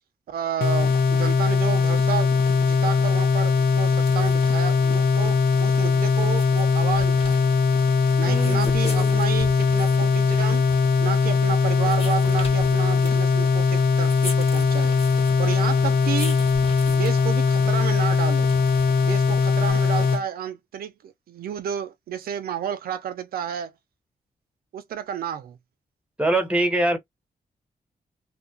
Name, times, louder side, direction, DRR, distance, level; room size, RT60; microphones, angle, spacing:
voice 1, 0.3-7.5 8.2-10.6 11.0-15.0 15.4-16.4 16.9-18.6 19.0-23.7 24.7-25.6, right 8 dB, 85° right, 0.4 m, -31 dB
sound 1, 0.6-20.2, left 5 dB, 80° left, 0.6 m, -20 dB
sound 2, 3.9-19.7, left 2 dB, 40° left, 1.1 m, -41 dB
voice 2, 8.2-9.3 26.2-27.0, right 1 dB, 10° right, 0.7 m, -24 dB
2.7 x 2.2 x 2.6 m
wide cardioid pair, 155°, 15 cm